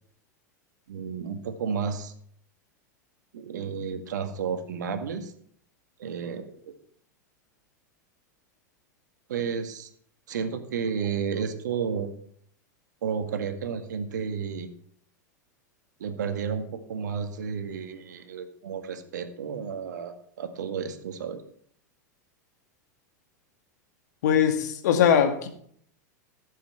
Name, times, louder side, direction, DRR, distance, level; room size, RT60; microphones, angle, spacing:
voice 1, 0.9-2.1 3.3-5.3 6.0-6.7 9.3-9.9 10.3-12.1 13.0-14.7 16.0-21.4, right 6 dB, 75° right, 1.9 m, -32 dB
voice 2, 24.2-25.5, left 8 dB, 65° left, 2.0 m, -21 dB
14.0 x 7.6 x 5.9 m
hypercardioid pair, 95°, 10 cm